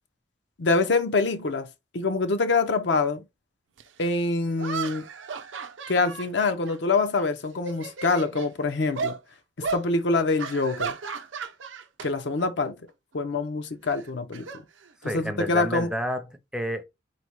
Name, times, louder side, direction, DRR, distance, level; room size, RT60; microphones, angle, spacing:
voice 1, 0.6-1.7 1.9-3.2 4.0-5.1 5.9-9.2 9.7-11.0 12.0-12.8 13.1-14.5 15.1-15.9, left 3 dB, 65° left, 0.6 m, -25 dB
sound 1, 3.8-3.9 4.6-7.2 7.6-8.5 9.0-9.2 9.6-9.9 10.4-12.1 12.4-12.7 13.9-15.3, right 5 dB, 80° right, 0.6 m, -35 dB
voice 2, 15.0-16.8, equal, 5° right, 0.5 m, -30 dB
4.1 x 2.1 x 4.5 m
head